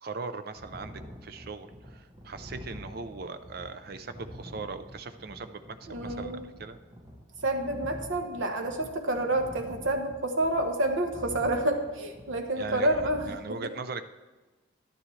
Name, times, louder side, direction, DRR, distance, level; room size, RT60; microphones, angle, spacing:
voice 1, 0.0-6.8 12.6-14.1, right 4 dB, 50° right, 10 dB, 0.5 m, -40 dB
sound 1, 0.6-13.3, equal, 20° right, 1.0 m, -46 dB
voice 2, 5.9-6.5 7.4-13.6, right 1 dB, 70° right, 4 dB, 1.1 m, -29 dB
11.5 x 10.0 x 3.2 m, 1.2 s
head